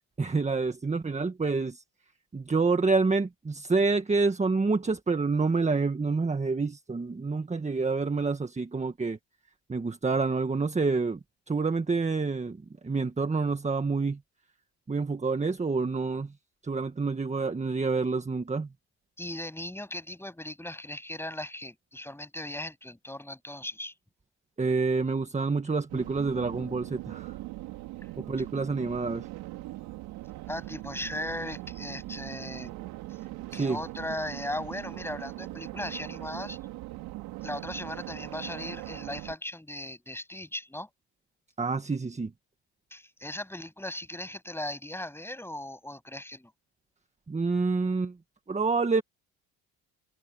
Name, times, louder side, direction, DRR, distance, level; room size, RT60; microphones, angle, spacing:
voice 1, 0.2-1.8 2.3-9.2 9.7-11.2 11.5-12.6 12.8-14.2 14.9-16.3 16.6-18.7 24.6-27.3 28.2-29.3 33.5-33.8 41.6-42.3 47.3-48.1 48.5-49.0, right 4 dB, 20° right, 1.6 m, -27 dB
voice 2, 19.2-23.9 30.5-32.7 33.5-36.6 37.4-40.9 42.9-46.5, left 1 dB, 5° left, 7.8 m, -38 dB
sound 1, 25.9-39.4, right 18 dB, 85° right, 3.6 m, -40 dB
supercardioid pair, 85°, 36 cm